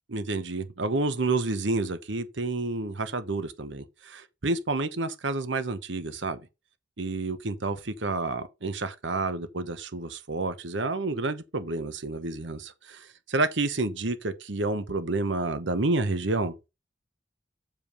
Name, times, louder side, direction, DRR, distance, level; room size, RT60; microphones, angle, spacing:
voice 1, 0.1-6.4 7.0-16.5, right 3 dB, 70° right, 1.0 m, -29 dB
7.1 x 5.2 x 5.4 m
head